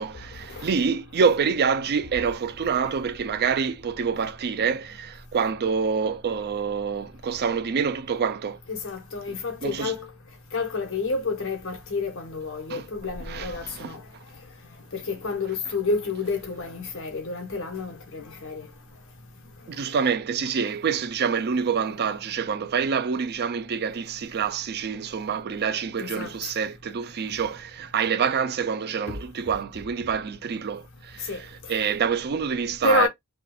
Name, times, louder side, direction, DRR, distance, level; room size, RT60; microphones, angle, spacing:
voice 1, 0.0-8.6 9.6-9.9 12.7-12.8 13.3-13.9 19.7-33.1, right 6 dB, 45° right, 0.4 m, -26 dB
voice 2, 8.7-10.0 10.5-14.0 14.9-18.6 26.0-26.3 31.3-31.4 32.8-33.1, left 3 dB, 65° left, 1.2 m, -29 dB
4.9 x 2.4 x 2.3 m
head